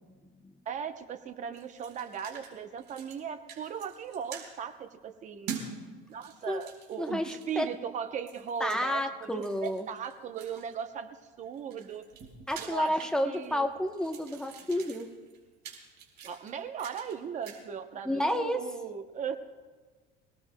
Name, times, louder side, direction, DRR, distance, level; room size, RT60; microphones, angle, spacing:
voice 1, 0.7-5.5 6.1-12.0 12.6-12.9 13.2-13.7 16.2-19.4, right 7 dB, 35° right, 8 dB, 0.8 m, -38 dB
sound 1, 1.5-2.5 2.8-3.2 3.5-4.5 5.5-5.7 6.1-7.7 8.3-8.8 9.4-10.8 11.4-13.6 13.9-17.2 17.4-17.6, right 7 dB, 55° right, 4.3 m, -45 dB
voice 2, 7.0-7.7 8.6-9.8 12.5-15.1 18.0-18.6, equal, 5° left, 4 dB, 0.9 m, -30 dB
27.0 x 18.0 x 2.2 m, 1.4 s
cardioid pair, 145°, 21 cm